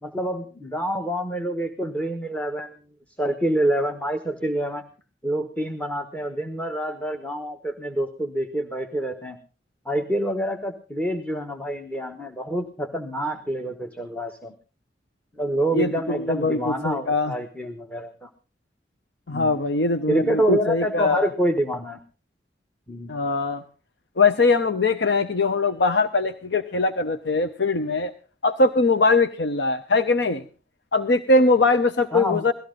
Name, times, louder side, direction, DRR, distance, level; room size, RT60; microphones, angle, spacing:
voice 1, 0.0-2.7 3.2-4.8 5.2-9.4 9.8-14.5 15.4-18.3 19.3-19.5 20.1-22.0 22.9-23.2 32.1-32.4, right 1 dB, 10° left, 6 dB, 1.1 m, -27 dB
voice 2, 15.7-17.3 19.3-21.3 23.1-23.6 24.2-28.1 28.4-30.4 30.9-32.5, left 3 dB, 70° left, 10 dB, 0.8 m, -21 dB
17.5 x 14.0 x 3.8 m, 0.35 s
head